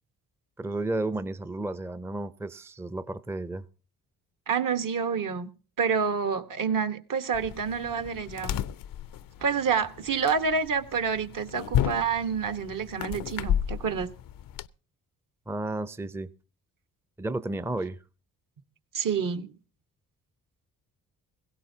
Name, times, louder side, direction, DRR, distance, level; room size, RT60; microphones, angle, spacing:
voice 1, 0.6-3.6 15.5-16.3 17.2-18.0, right 2 dB, 5° right, 0.6 m, -32 dB
voice 2, 4.5-5.5 5.8-8.6 9.4-14.1 18.9-19.5, right 6 dB, 55° right, 1.3 m, -28 dB
sound 1, 7.3-14.7, left 10 dB, 60° left, 0.6 m, -33 dB
18.0 x 16.5 x 2.8 m
supercardioid pair, 55°, 39 cm